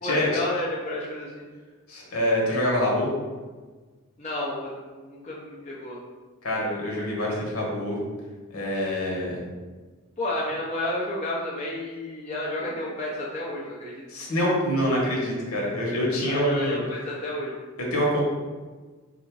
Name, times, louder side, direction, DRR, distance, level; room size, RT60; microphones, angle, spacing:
voice 1, 0.0-1.4 4.2-6.0 10.2-14.0 16.3-17.5, left 1 dB, 30° left, -6 dB, 0.8 m, -31 dB
voice 2, 1.9-3.1 6.4-8.0 8.5-9.4 14.1-16.8 17.8-18.2, equal, 80° left, -3 dB, 1.4 m, -25 dB
4.4 x 2.6 x 4.6 m, 1.4 s
head